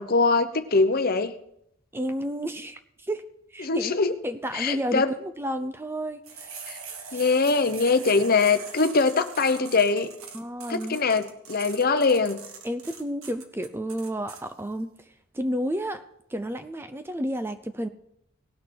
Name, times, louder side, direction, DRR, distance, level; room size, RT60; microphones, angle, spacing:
voice 1, 0.0-1.3 3.6-4.1 4.5-5.1 6.7-6.8 7.1-10.1 10.7-12.4, left 4 dB, 45° left, 9 dB, 0.8 m, -22 dB
voice 2, 1.9-3.2 3.5-3.9 4.2-6.5 7.1-7.2 10.3-11.0 12.6-16.0 16.3-17.9, equal, 10° right, 9 dB, 0.5 m, -31 dB
sound 1, 6.3-14.4, right 5 dB, 80° right, 1.5 m, -42 dB
18.5 x 6.4 x 4.7 m, 0.74 s
head